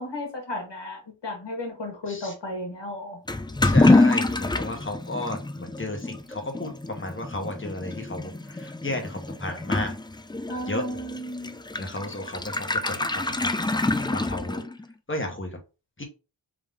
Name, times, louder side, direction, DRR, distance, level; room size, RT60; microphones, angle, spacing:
voice 1, 0.0-3.2 10.5-11.6, left 1 dB, 65° left, 1.6 m, -34 dB
Toilet flush / Liquid, 3.3-14.9, left 2 dB, 10° left, 0.4 m, -26 dB
voice 2, 3.6-10.0 10.7-10.8 11.8-14.6 15.1-15.6 16.0-16.1, left 1 dB, 25° left, 1.3 m, -34 dB
3.6 x 3.0 x 3.6 m
wide cardioid pair, 75°, 45 cm